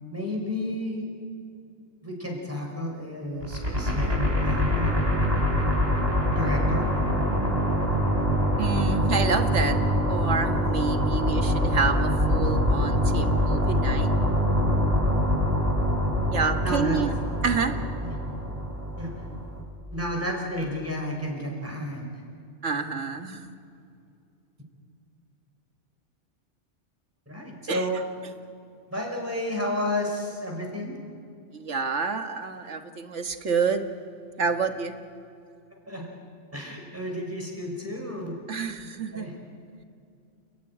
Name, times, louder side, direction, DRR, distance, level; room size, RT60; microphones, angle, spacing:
voice 1, 0.0-1.1 2.0-5.4 6.3-6.9 16.6-17.0 18.0-18.2 19.0-19.1 19.9-22.1 27.3-28.0 28.9-31.0 35.9-36.1 36.5-38.4 39.1-39.3, left 1 dB, 10° right, 0 dB, 5.3 m, -31 dB
sound 1, 3.4-19.6, equal, 35° right, 3.4 m, -24 dB
voice 2, 8.6-9.8 10.1-14.1 16.3-17.1 17.4-17.8 22.6-23.6 27.7-27.8 31.5-33.9 34.4-34.9 38.5-39.3, right 5 dB, 75° right, 6 dB, 1.8 m, -28 dB
29.5 x 14.0 x 10.0 m, 2.5 s
omnidirectional pair, 1.2 m